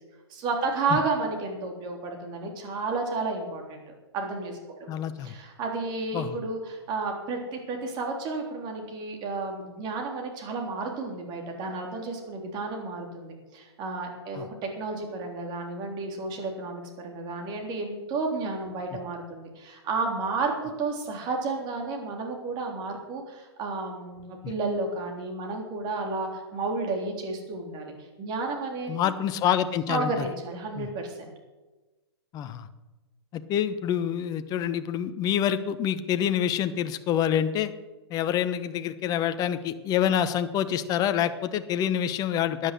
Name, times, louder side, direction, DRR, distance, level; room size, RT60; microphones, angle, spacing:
voice 1, 0.3-3.8 4.1-4.9 5.2-14.5 14.8-20.5 20.8-29.1 29.9-31.3, right 3 dB, 30° right, 2 dB, 3.7 m, -32 dB
voice 2, 4.9-5.3 6.1-6.4 14.3-14.5 24.4-24.5 28.9-30.1 30.8-30.9 32.3-32.7 33.3-37.7 38.1-42.7, left 9 dB, 25° left, 11 dB, 1.0 m, -27 dB
13.0 x 10.5 x 7.9 m, 1.2 s
hypercardioid pair, 125°, 14 cm